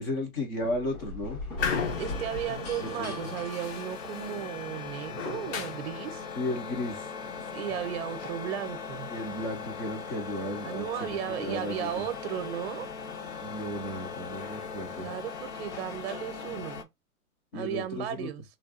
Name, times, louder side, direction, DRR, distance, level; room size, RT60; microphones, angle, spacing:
voice 1, 0.0-1.4 2.8-3.3 6.4-7.1 9.1-12.0 13.4-15.1 17.5-18.3, left 1 dB, 15° left, 0.4 m, -34 dB
sound 1, 0.6-4.6, left 2 dB, 80° left, 1.6 m, -40 dB
sound 2, 1.6-16.8, left 6 dB, 50° left, 0.8 m, -37 dB
voice 2, 1.9-6.3 7.5-9.1 10.6-12.9 15.0-16.9 17.5-18.4, right 10 dB, 45° right, 0.7 m, -35 dB
3.5 x 2.2 x 2.4 m
hypercardioid pair, 140°, 43 cm